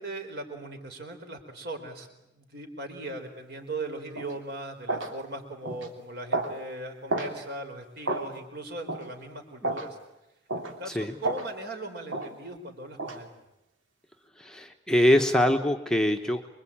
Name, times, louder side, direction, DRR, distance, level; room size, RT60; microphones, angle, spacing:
voice 1, 0.0-2.1 2.3-10.0 10.5-13.3, right 2 dB, 50° right, 5 dB, 4.3 m, -39 dB
sound 1, 4.2-4.3 4.9-5.1 5.7-5.9 6.3-6.6 7.1-7.3 8.1-8.3 8.9-9.1 9.6-9.9 10.5-10.7 11.2-11.5 12.1-12.3 13.0-13.2, right 2 dB, 75° right, 3.0 m, -30 dB
voice 2, 10.8-11.2 14.4-16.5, left 1 dB, 5° left, 3 dB, 1.1 m, -24 dB
26.0 x 23.0 x 8.7 m, 0.90 s
head